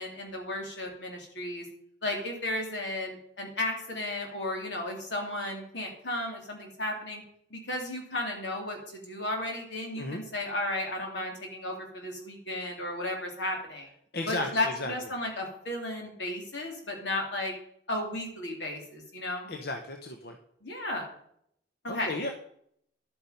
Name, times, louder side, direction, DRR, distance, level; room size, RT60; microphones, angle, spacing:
voice 1, 0.0-1.7 2.0-7.2 7.5-13.9 14.3-17.5 17.9-19.5 20.6-21.1 21.8-22.1, left 1 dB, 85° left, 1 dB, 3.5 m, -34 dB
voice 2, 14.1-14.9 19.5-20.4 21.9-22.3, left 2 dB, 65° left, 4 dB, 1.0 m, -34 dB
11.5 x 8.8 x 5.3 m, 0.70 s
head